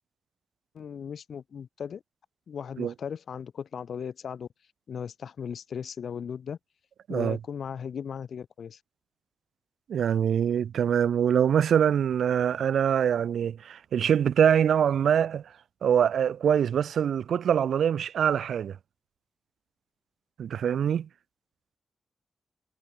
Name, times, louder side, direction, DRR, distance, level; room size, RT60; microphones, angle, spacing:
voice 1, 0.7-2.0 2.5-4.5 4.9-6.6 7.1-8.8, left 7 dB, 75° left, 1.3 m, -37 dB
voice 2, 9.9-15.4 15.8-18.8 20.4-21.1, right 8 dB, 85° right, 1.1 m, -24 dB
cardioid pair, 80°, 0 cm